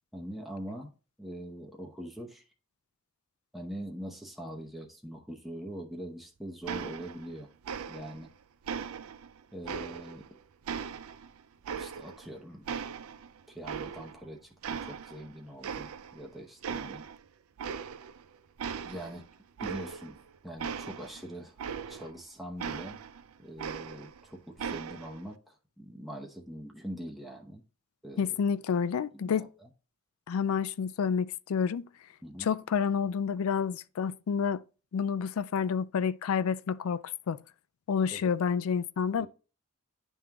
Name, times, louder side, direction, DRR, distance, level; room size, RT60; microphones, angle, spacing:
voice 1, 0.1-0.9 1.2-2.5 3.5-7.5 7.9-8.3 9.5-10.2 11.8-12.7 13.5-17.1 18.8-19.2 19.6-20.2 20.4-21.6 21.9-23.0 23.4-27.6 28.0-28.4 29.1-29.5 32.2-32.5 38.1-38.3 39.2-39.3, right 1 dB, ahead, 0.8 m, -43 dB
sound 1, 6.7-7.4 7.6-8.3 8.7-10.3 10.7-12.3 12.7-14.3 14.6-15.3 15.6-16.3 16.6-17.2 17.6-18.2 18.6-22.2 22.6-24.2 24.6-25.2, right 6 dB, 85° right, 0.4 m, -39 dB
voice 2, 28.2-29.5 30.3-31.9 32.4-34.6 34.9-37.4 37.9-39.3, left 6 dB, 90° left, 0.4 m, -29 dB
10.0 x 3.6 x 2.9 m
head